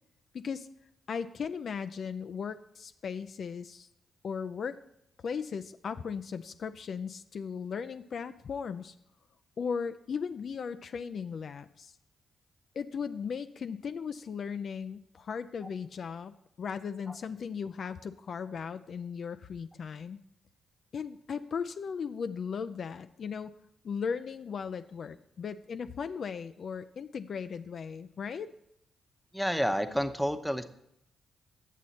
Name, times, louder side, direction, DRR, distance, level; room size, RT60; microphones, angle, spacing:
voice 1, 0.3-0.7 1.1-3.9 4.2-4.8 5.2-8.9 9.6-11.9 12.7-20.2 20.9-23.5 23.8-28.5, left 6 dB, 60° left, 10 dB, 0.3 m, -37 dB
voice 2, 29.3-30.6, equal, ahead, 7 dB, 0.8 m, -29 dB
9.0 x 7.3 x 4.2 m, 0.77 s
hypercardioid pair, 40°, 0 cm